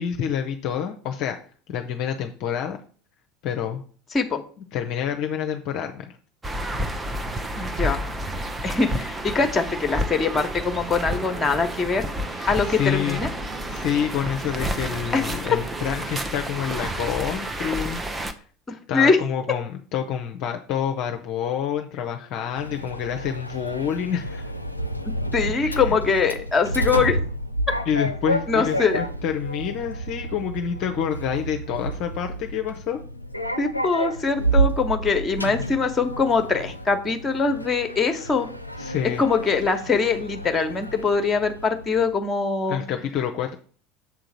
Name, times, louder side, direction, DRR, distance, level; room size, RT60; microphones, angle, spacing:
voice 1, 0.0-1.4 1.7-2.8 3.4-3.8 4.7-6.2 12.3-13.2 13.7-18.0 18.3-18.4 18.9-24.5 25.4-26.0 27.9-33.0 38.8-39.2 42.7-43.6, left 8 dB, 45° left, 4 dB, 0.6 m, -28 dB
sound 1, 6.4-18.3, right 1 dB, 15° right, 0.8 m, -30 dB
voice 2, 7.6-8.0 8.6-12.1 12.5-13.3 15.1-15.2 18.7-19.2 25.0-27.2 28.5-29.0 33.6-38.5 39.2-42.8, left 4 dB, 20° left, 7 dB, 1.2 m, -23 dB
Sliding door, 22.6-42.2, right 1 dB, 90° left, 0.4 m, -30 dB
7.2 x 3.8 x 6.1 m, 0.43 s
figure-of-eight pair, 75°, 0 cm